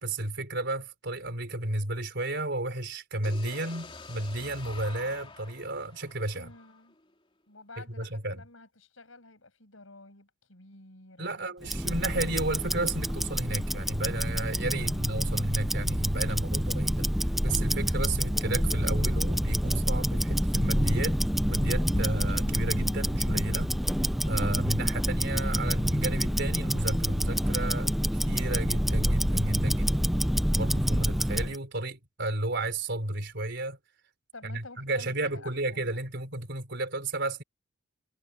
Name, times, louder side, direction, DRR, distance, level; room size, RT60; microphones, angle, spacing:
voice 1, 0.0-6.5 7.8-8.4 11.2-17.1 17.4-23.8 24.3-27.9 28.2-30.2 30.5-33.8 34.4-37.4, right 2 dB, 60° right, 4.0 m, -33 dB
sound 1, 3.2-7.1, left 3 dB, 25° left, 3.2 m, -47 dB
voice 2, 6.3-7.0 7.5-11.9 14.7-15.2 34.3-36.0, left 2 dB, 75° left, 7.2 m, -51 dB
Tick-tock, 11.6-31.6, equal, ahead, 0.4 m, -27 dB
sound 2, 13.8-29.7, equal, 60° left, 3.2 m, -47 dB
head